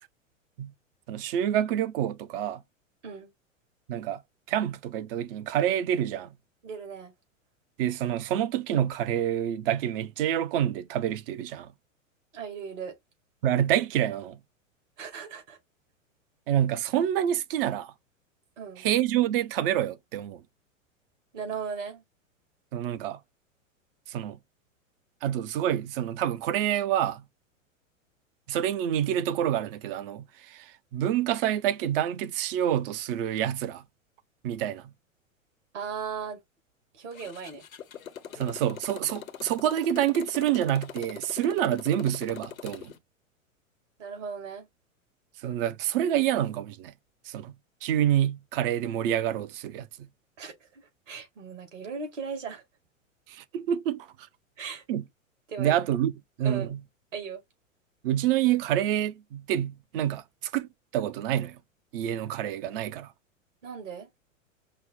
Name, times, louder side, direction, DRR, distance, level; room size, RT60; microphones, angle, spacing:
voice 1, 1.1-2.6 3.9-4.2 4.5-6.3 7.8-11.7 13.4-14.4 16.5-17.9 18.8-20.4 22.7-23.2 24.1-24.4 25.2-27.2 28.5-33.8 34.4-34.8 38.3-42.9 45.4-46.9 47.3-47.5 47.8-50.1 53.3-54.1 54.9-55.0 55.6-56.1 56.4-56.8 58.0-61.6 61.9-63.1, right 11 dB, 45° right, 0.6 m, -27 dB
voice 2, 6.6-7.1 12.3-13.0 15.0-15.6 18.6-18.9 21.3-22.0 35.7-36.4 36.9-37.6 44.0-44.7 50.4-52.6 54.6-54.8 55.5-55.8 56.4-56.7 57.1-57.4 63.6-64.1, right 6 dB, 60° right, 2.4 m, -37 dB
Motorcycle, 37.1-43.0, left 8 dB, 80° left, 0.8 m, -42 dB
5.5 x 2.1 x 3.6 m
figure-of-eight pair, 100°, 40 cm